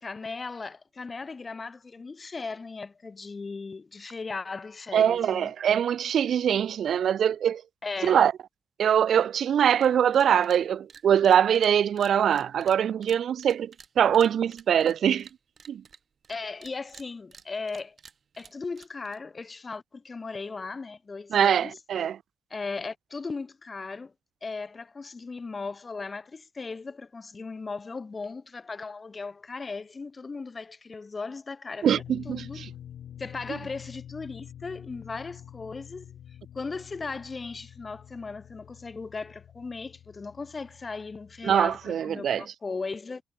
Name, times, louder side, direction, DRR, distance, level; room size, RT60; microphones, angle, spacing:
voice 1, 0.0-5.5 7.8-8.2 16.3-18.0 18.4-21.7 22.5-24.1 24.4-31.9 32.3-32.6 33.2-36.1 36.5-43.2, left 4 dB, 30° left, 0.4 m, -37 dB
voice 2, 4.9-7.6 8.0-8.3 8.8-15.3 15.7-15.8 21.3-22.2 31.8-32.7 41.4-42.4, right 9 dB, 70° right, 0.3 m, -23 dB
sound 1, 9.8-9.9 10.1-10.6 10.9-16.4 16.6-19.2, right 6 dB, 45° right, 4.4 m, -51 dB
sound 2, 31.9-41.9, left 10 dB, 80° left, 1.2 m, -47 dB
wide cardioid pair, 140°, 0 cm